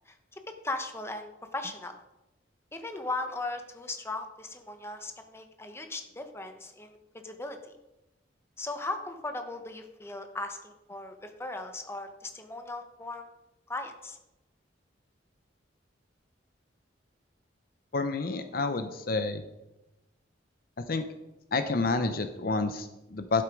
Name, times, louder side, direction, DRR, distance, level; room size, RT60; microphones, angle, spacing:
voice 1, 0.1-2.0 2.7-7.0 7.2-7.6 8.6-13.3 13.7-14.2, left 2 dB, 15° left, 6 dB, 1.0 m, -38 dB
voice 2, 17.9-19.4 20.8-21.1 21.5-23.4, left 3 dB, 50° left, 9 dB, 0.7 m, -29 dB
12.0 x 7.8 x 5.1 m, 0.96 s
head